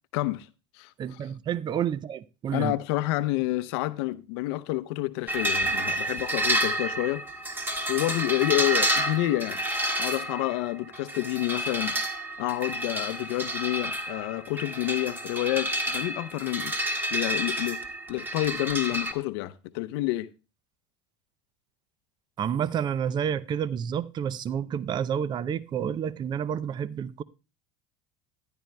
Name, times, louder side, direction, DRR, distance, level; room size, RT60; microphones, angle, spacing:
voice 1, 0.1-0.5 0.8-1.2 2.5-7.2 7.9-9.6 10.0-12.0 12.4-16.7 17.1-17.8 18.1-20.3, left 17 dB, 75° left, 0.6 m, -29 dB
voice 2, 1.0-2.7 22.4-27.2, right 8 dB, 30° right, 0.5 m, -29 dB
sound 1, 5.3-19.1, right 1 dB, 15° right, 1.6 m, -30 dB
14.0 x 10.5 x 2.2 m
supercardioid pair, 95°, 14 cm